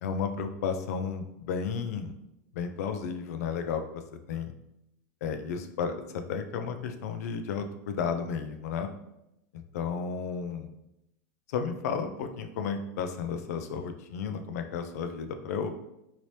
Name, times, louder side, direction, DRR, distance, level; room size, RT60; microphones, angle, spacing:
voice 1, 0.0-2.1 2.5-4.5 5.2-8.9 9.5-10.7 11.5-15.7, left 6 dB, 70° left, 7 dB, 0.4 m, -33 dB
2.9 x 2.8 x 3.1 m, 0.86 s
supercardioid pair, 170°, 9 cm